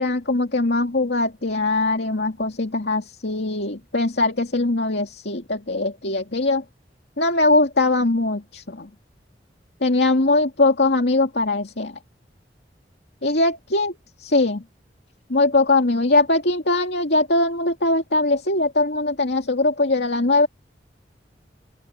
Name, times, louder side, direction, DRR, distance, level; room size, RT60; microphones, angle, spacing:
voice 1, 0.0-6.6 7.2-8.9 9.8-12.0 13.2-13.9 14.2-14.6 15.3-20.5, left 2 dB, 75° left, 2.3 m, -21 dB
open air
head